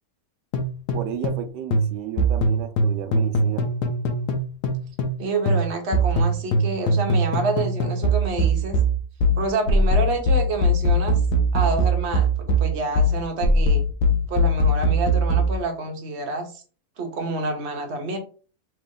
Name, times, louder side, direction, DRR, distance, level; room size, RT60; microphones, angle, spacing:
sound 1, 0.5-1.5 1.7-5.2 5.5-15.5, right 1 dB, 80° left, 1.2 m, -21 dB
voice 1, 0.9-3.6, right 10 dB, 85° right, 1.2 m, -33 dB
voice 2, 5.2-8.8 9.4-11.2 11.5-12.3 12.6-13.8 14.3-16.6 17.0-18.2, right 3 dB, 50° right, 0.9 m, -28 dB
3.3 x 3.0 x 3.6 m
omnidirectional pair, 1.8 m